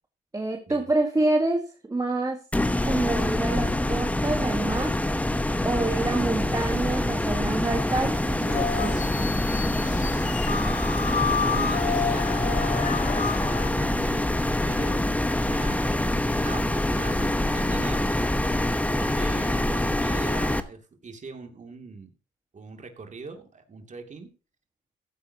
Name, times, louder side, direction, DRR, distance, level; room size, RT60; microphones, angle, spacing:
voice 1, 0.3-2.4 2.8-4.9 5.6-9.1, right 2 dB, 15° right, 3 dB, 1.5 m, -27 dB
sound 1, 2.5-20.6, left 1 dB, 5° left, 0.9 m, -25 dB
sound 2, 6.2-7.0 8.1-15.1 16.4-16.5, right 7 dB, 80° right, 2.4 m, -46 dB
sound 3, 8.5-13.7, left 7 dB, 40° left, 0.6 m, -30 dB
voice 2, 11.4-12.8 13.5-15.1 15.5-16.1 16.4-18.3 19.0-22.1 22.5-24.3, right 4 dB, 40° right, 5 dB, 2.6 m, -41 dB
15.0 x 9.1 x 2.9 m, 0.35 s
cardioid pair, 90°, 20 cm